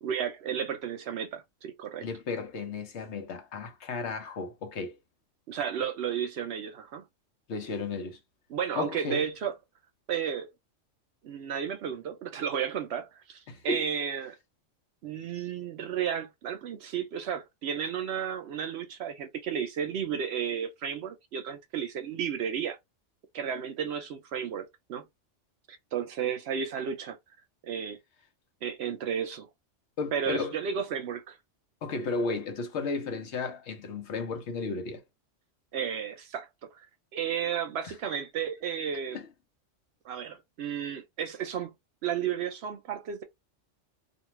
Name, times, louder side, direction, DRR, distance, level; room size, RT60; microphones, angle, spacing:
voice 1, 0.0-2.1 5.5-7.0 8.5-9.5 10.1-10.5 11.2-14.4 15.0-22.8 23.3-25.1 25.7-27.2 27.6-28.0 28.6-29.5 30.1-31.4 35.7-36.7 37.1-39.2 40.0-41.7 42.0-43.2, right 8 dB, 65° right, 0.8 m, -33 dB
voice 2, 2.0-5.0 7.5-8.2 8.8-9.2 13.5-13.9 30.0-30.6 31.8-35.0 37.8-37.9 39.1-39.3, left 4 dB, 65° left, 1.0 m, -34 dB
2.5 x 2.3 x 3.0 m
omnidirectional pair, 1.3 m